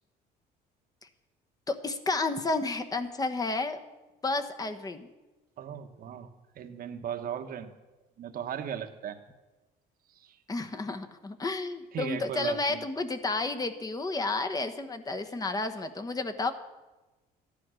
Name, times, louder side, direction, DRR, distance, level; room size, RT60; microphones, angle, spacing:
voice 1, 1.7-3.8 4.2-5.1 10.5-16.5, left 3 dB, 20° left, 7 dB, 1.1 m, -31 dB
voice 2, 5.6-6.3 6.5-7.7 8.2-9.2 10.1-10.4 11.9-12.8, right 8 dB, 60° right, 7 dB, 1.2 m, -37 dB
13.5 x 10.5 x 6.3 m, 1.1 s
cardioid pair, 110°, 17 cm